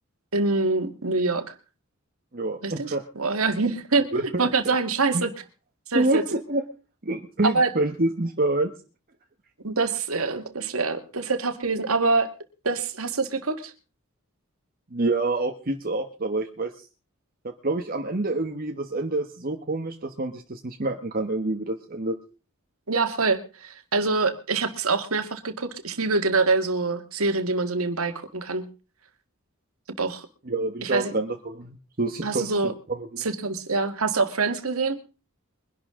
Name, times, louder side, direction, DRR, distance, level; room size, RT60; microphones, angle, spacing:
voice 1, 0.3-1.5 2.6-5.3 5.9-6.2 7.4-7.7 9.6-12.3 12.6-13.7 22.9-28.7 30.0-30.3 30.8-31.1 32.2-32.7 33.2-35.0, right 3 dB, 90° right, 8 dB, 1.9 m, -25 dB
voice 2, 2.3-3.0 4.1-4.8 5.1-5.2 5.9-6.6 7.0-8.7 14.9-16.9 17.4-22.2 30.5-33.3, right 2 dB, 45° right, 4 dB, 1.2 m, -27 dB
23.0 x 11.5 x 3.8 m, 0.34 s
head